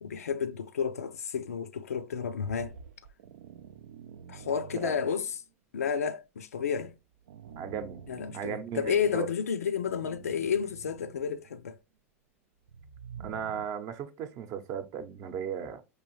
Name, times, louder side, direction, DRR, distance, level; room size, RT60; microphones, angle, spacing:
voice 1, 0.0-2.7 4.3-5.3 5.7-7.0 8.1-11.8, left 7 dB, 85° left, 0.4 m, -31 dB
sound 1, 2.4-5.5 6.8-9.1 9.7-11.6 12.6-13.7, right 7 dB, 80° right, 0.4 m, -48 dB
voice 2, 7.6-8.0 8.3-9.3 13.2-15.8, right 8 dB, 45° right, 0.7 m, -36 dB
4.8 x 2.6 x 3.0 m
hypercardioid pair, 95°, 8 cm